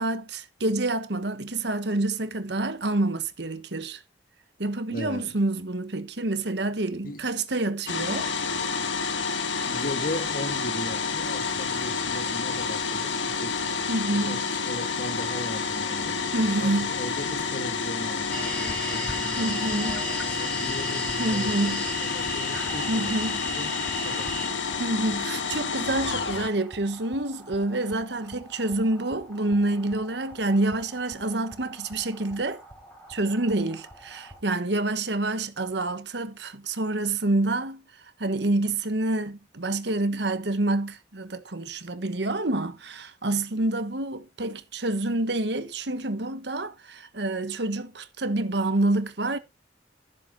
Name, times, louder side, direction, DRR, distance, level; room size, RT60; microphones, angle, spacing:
voice 1, 0.0-4.0 4.6-8.3 13.9-14.4 16.3-16.9 19.4-20.0 21.2-21.8 22.9-23.4 24.8-32.6 33.1-37.8 38.2-49.4, right 2 dB, 65° right, 1.3 m, -27 dB
voice 2, 4.9-5.4 7.0-7.2 9.6-19.9 20.3-24.6, left 1 dB, 50° left, 1.7 m, -38 dB
sound 1, 7.9-26.5, left 5 dB, 85° left, 1.4 m, -29 dB
sound 2, 18.3-34.4, equal, 5° left, 3.9 m, -38 dB
14.0 x 7.6 x 4.1 m
head